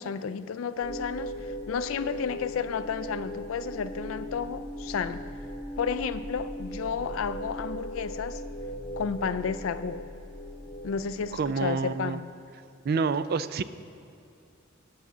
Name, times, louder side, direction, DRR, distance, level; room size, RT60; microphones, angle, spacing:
voice 1, 0.0-5.2 5.8-8.4 9.0-10.0 10.8-12.3, left 6 dB, 80° left, 13 dB, 0.4 m, -32 dB
sound 1, 0.8-11.5, equal, 40° left, 0.9 m, -38 dB
voice 2, 11.3-12.2 12.8-13.6, right 5 dB, 50° right, 14 dB, 0.3 m, -28 dB
9.3 x 6.0 x 7.2 m, 2.5 s
head